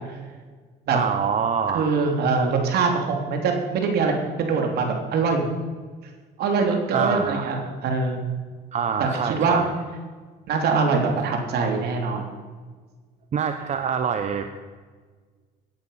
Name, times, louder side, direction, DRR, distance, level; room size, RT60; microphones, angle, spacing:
voice 1, 0.9-2.1 6.9-7.5 8.7-9.7 13.3-14.5, right 6 dB, 45° right, 7 dB, 1.0 m, -26 dB
voice 2, 1.7-4.9 5.1-5.5 6.4-8.2 9.0-9.6 10.5-12.3, right 4 dB, 70° right, 3 dB, 3.2 m, -23 dB
17.5 x 10.5 x 5.8 m, 1.5 s
cardioid pair, 110°, 17 cm